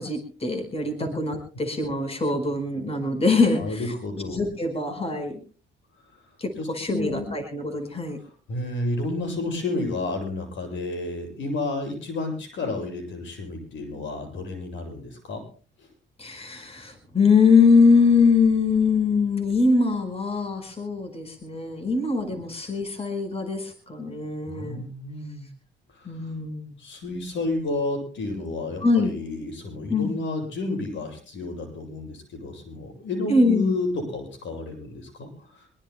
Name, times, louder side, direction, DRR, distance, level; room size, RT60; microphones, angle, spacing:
voice 1, 0.0-3.8 4.3-5.4 6.4-8.2 16.2-24.8 26.0-26.6 28.8-29.1 29.9-30.2 33.3-33.7, left 4 dB, 30° left, 7 dB, 4.8 m, -22 dB
voice 2, 3.6-4.4 6.0-7.4 8.2-15.4 15.8-15.9 24.5-25.5 25.9-26.3 26.8-35.7, left 2 dB, 70° left, 4 dB, 7.9 m, -31 dB
24.0 x 22.0 x 2.2 m, 0.39 s
cardioid pair, 90°, 20 cm